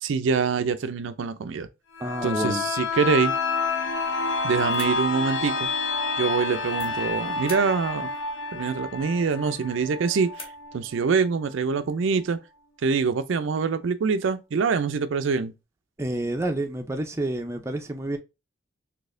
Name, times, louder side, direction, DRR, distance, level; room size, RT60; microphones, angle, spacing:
voice 1, 0.0-1.7 2.2-3.3 4.4-5.7 6.2-8.1 8.5-10.3 10.7-12.4 12.8-15.5, right 5 dB, 70° right, 0.4 m, -25 dB
sound 1, 1.9-11.5 11.9-12.0, left 4 dB, 60° left, 0.9 m, -29 dB
voice 2, 2.0-2.7 16.0-18.2, right 1 dB, 15° right, 0.5 m, -29 dB
sound 2, 4.4-11.1, left 2 dB, 30° left, 1.6 m, -49 dB
4.1 x 2.8 x 2.5 m
head